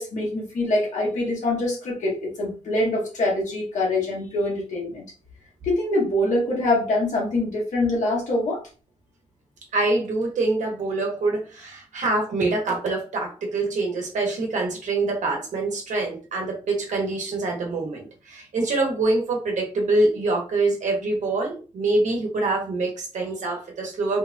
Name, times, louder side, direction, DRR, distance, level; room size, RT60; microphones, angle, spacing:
voice 1, 0.0-5.1 5.6-8.6, left 2 dB, 85° left, -3 dB, 1.4 m, -24 dB
voice 2, 9.7-24.2, right 2 dB, 85° right, 0 dB, 1.1 m, -25 dB
3.3 x 2.1 x 2.6 m, 0.35 s
cardioid pair, 75°, 12 cm